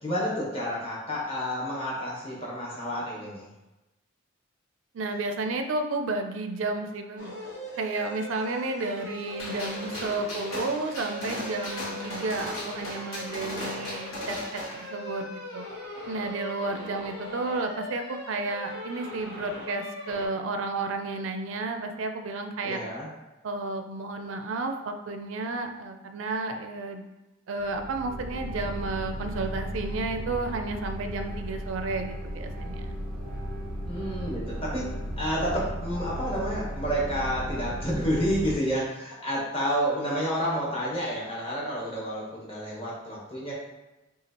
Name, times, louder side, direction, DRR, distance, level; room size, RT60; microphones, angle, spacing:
voice 1, 0.0-3.4 22.6-23.1 33.9-34.9 35.2-43.5, equal, 30° left, -5 dB, 1.1 m, -30 dB
voice 2, 4.9-7.4 7.8-15.7 16.1-22.8 23.4-27.0 27.5-32.9, right 3 dB, 65° right, 6 dB, 0.4 m, -32 dB
sound 1, 7.2-20.3, left 1 dB, 85° left, 1.3 m, -40 dB
Gunshot gunfire, 9.4-14.8, left 1 dB, 65° left, 1.2 m, -37 dB
sound 2, 27.6-38.6, equal, 5° right, 0.8 m, -35 dB
5.7 x 2.4 x 2.9 m, 1.0 s
head